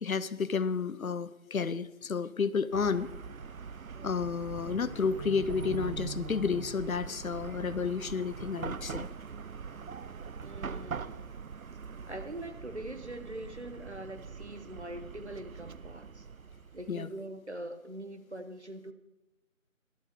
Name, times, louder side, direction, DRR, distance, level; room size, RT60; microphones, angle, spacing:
voice 1, 0.0-3.1 4.0-9.1 16.9-17.1, left 5 dB, 85° left, 15 dB, 0.7 m, -31 dB
Chatter / Car passing by / Traffic noise roadway noise, 2.7-17.0, right 6 dB, 85° right, 0.6 m, -42 dB
voice 2, 10.4-11.4 12.1-16.3 16.7-18.9, right 1 dB, 55° right, 8 dB, 1.2 m, -43 dB
12.0 x 11.5 x 4.6 m, 0.99 s
figure-of-eight pair, 175°, 41 cm